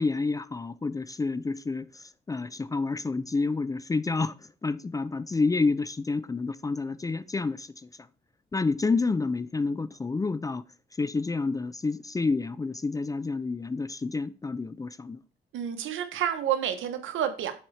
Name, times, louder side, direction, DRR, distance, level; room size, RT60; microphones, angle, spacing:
voice 1, 0.0-7.7 8.5-10.6 11.0-15.2, left 3 dB, 15° left, 0.4 m, -29 dB
voice 2, 15.5-17.5, right 10 dB, 80° right, 1.1 m, -29 dB
7.1 x 4.4 x 4.8 m
cardioid pair, 90°, 20 cm